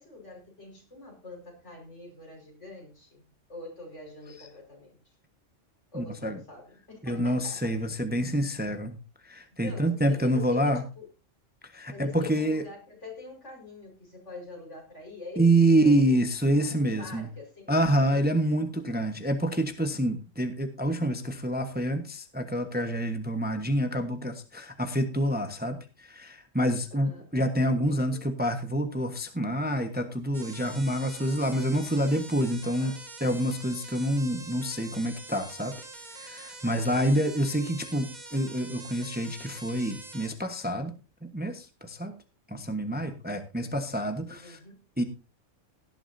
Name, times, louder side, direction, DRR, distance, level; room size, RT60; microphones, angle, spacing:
voice 1, 0.0-5.2 5.9-7.8 9.6-11.1 11.9-16.2 16.4-17.7 18.1-18.3 26.7-27.3 27.9-28.3 32.8-33.0 36.6-37.1 44.3-44.9, left 3 dB, 65° left, 1 dB, 5.4 m, -45 dB
voice 2, 6.0-6.4 7.0-8.9 9.2-10.8 11.7-12.6 15.4-17.3 17.7-32.9 33.2-35.7 36.1-40.9 41.2-42.1 42.5-44.6 45.0-45.1, right 1 dB, 10° right, 6 dB, 1.1 m, -27 dB
sound 1, 30.3-40.3, right 2 dB, 35° right, 1.9 m, -45 dB
17.5 x 11.0 x 2.7 m, 0.31 s
omnidirectional pair, 1.3 m